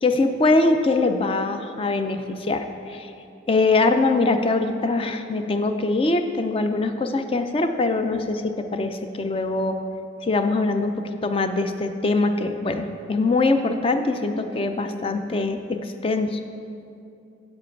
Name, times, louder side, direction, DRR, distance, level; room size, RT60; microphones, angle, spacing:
voice 1, 0.0-3.1 3.5-9.8 10.2-16.4, left 3 dB, 30° left, 7 dB, 0.4 m, -23 dB
7.7 x 7.5 x 4.5 m, 2.6 s
head